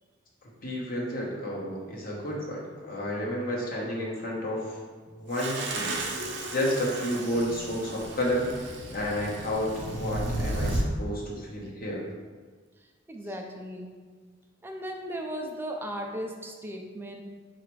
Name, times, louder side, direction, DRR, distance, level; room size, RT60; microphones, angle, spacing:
voice 1, 0.6-4.8 5.1-12.0, equal, 50° left, -3 dB, 0.9 m, -31 dB
sound 1, 5.3-10.9, right 2 dB, 70° right, 0.6 m, -33 dB
voice 2, 13.1-13.9 14.6-17.2, equal, 10° right, 2 dB, 0.3 m, -36 dB
4.1 x 2.4 x 4.5 m, 1.5 s
head